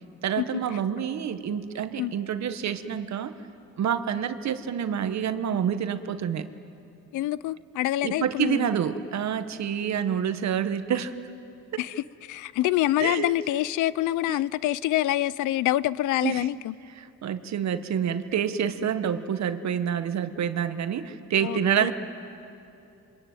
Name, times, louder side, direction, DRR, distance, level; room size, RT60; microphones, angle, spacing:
voice 1, 0.2-3.3 3.8-6.5 8.0-11.1 11.7-11.8 13.0-13.3 14.3-14.4 16.2-16.5 17.0-21.9, right 8 dB, 65° right, 9 dB, 1.5 m, -28 dB
voice 2, 7.1-8.7 11.8-16.7 21.4-21.9, left 15 dB, 85° left, 20 dB, 0.6 m, -26 dB
27.5 x 24.0 x 9.0 m, 2.8 s
cardioid pair, 90°, 30 cm